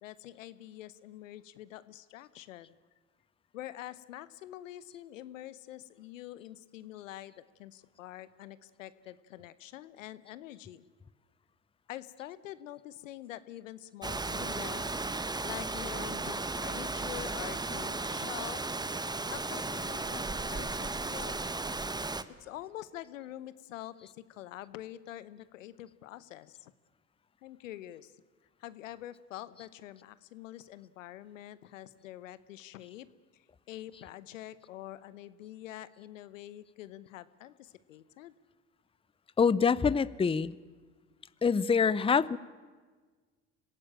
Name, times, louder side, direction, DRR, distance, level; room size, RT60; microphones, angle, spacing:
voice 1, 0.0-2.8 3.5-7.3 7.6-10.8 11.9-14.9 15.4-18.6 19.3-21.4 22.4-26.7 27.4-28.1 28.6-33.1 33.7-38.3, left 13 dB, 85° left, 16 dB, 0.9 m, -46 dB
Rain, 14.0-22.2, right 3 dB, 10° right, 1.0 m, -35 dB
voice 2, 39.4-40.5 41.4-42.4, left 6 dB, 15° left, 19 dB, 0.6 m, -25 dB
25.5 x 16.0 x 9.0 m, 1.4 s
hypercardioid pair, 70°, 38 cm